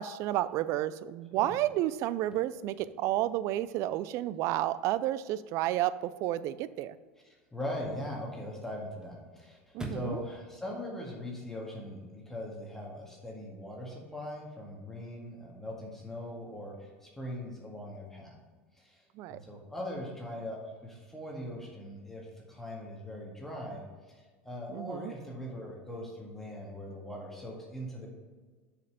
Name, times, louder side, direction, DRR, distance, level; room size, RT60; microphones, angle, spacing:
voice 1, 0.0-7.0 9.7-10.2 19.2-19.4 24.7-25.1, right 14 dB, 55° right, 16 dB, 0.4 m, -31 dB
Chirp tweet / Car / Slam, 2.0-11.9, right 1 dB, 10° right, 1.2 m, -52 dB
voice 2, 7.5-18.3 18.8-19.0 19.3-23.8 24.1-28.1, left 1 dB, 5° left, -2 dB, 1.8 m, -41 dB
6.5 x 5.2 x 5.7 m, 1.4 s
hypercardioid pair, 80°, 6 cm